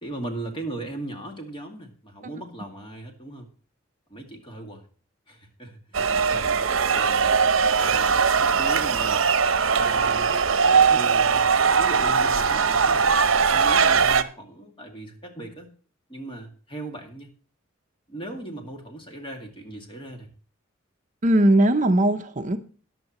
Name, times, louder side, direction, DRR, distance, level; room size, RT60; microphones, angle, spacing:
voice 1, 0.0-3.5 4.1-4.8 5.3-6.6 6.9-9.3 9.7-10.3 10.7-15.7 16.1-17.3 18.1-20.3, right 1 dB, 25° left, 3 dB, 2.2 m, -38 dB
sound 1, 5.9-14.2, right 5 dB, 75° right, 0.8 m, -20 dB
voice 2, 21.2-22.6, right 1 dB, 40° right, 7 dB, 0.7 m, -19 dB
13.5 x 10.5 x 3.0 m, 0.41 s
head